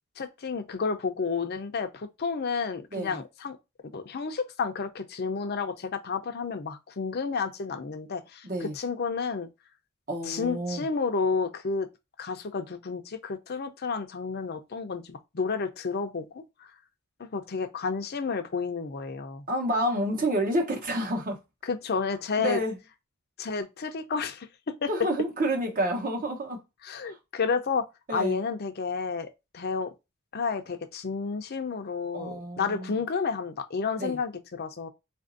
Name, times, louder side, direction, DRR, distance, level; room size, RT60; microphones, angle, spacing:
voice 1, 0.2-3.6 3.9-9.5 10.2-11.9 12.2-16.4 17.2-19.4 21.6-22.6 23.4-24.5 24.8-24.9 26.8-27.8 28.1-29.9 30.3-34.9, left 5 dB, 45° left, 0.6 m, -31 dB
voice 2, 10.1-10.8 19.5-21.4 22.4-22.8 24.9-26.6 28.1-28.4 32.1-32.9 34.0-34.2, right 1 dB, 40° right, 0.9 m, -29 dB
3.9 x 2.5 x 2.5 m
head